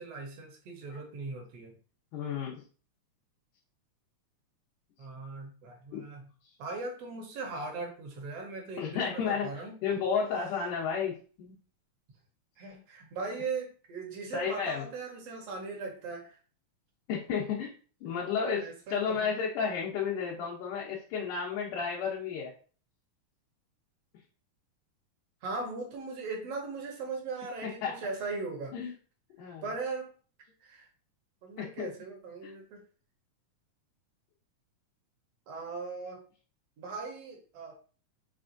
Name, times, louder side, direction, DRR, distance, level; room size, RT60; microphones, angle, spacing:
voice 1, 0.0-1.8 5.0-6.2 6.6-9.7 12.6-16.4 18.5-19.3 25.4-28.8 29.6-30.1 30.6-30.9 31.4-32.8 35.5-36.2 36.8-37.7, right 3 dB, 65° right, 2 dB, 1.7 m, -39 dB
voice 2, 2.1-2.6 5.9-6.0 8.8-9.5 9.8-11.5 14.3-14.8 17.1-17.7 18.0-22.5 27.6-27.9 28.7-28.9 29.4-29.7 31.6-31.9 32.4-32.5, left 6 dB, 80° left, -4 dB, 2.4 m, -32 dB
5.9 x 3.4 x 2.5 m, 0.39 s
omnidirectional pair, 3.7 m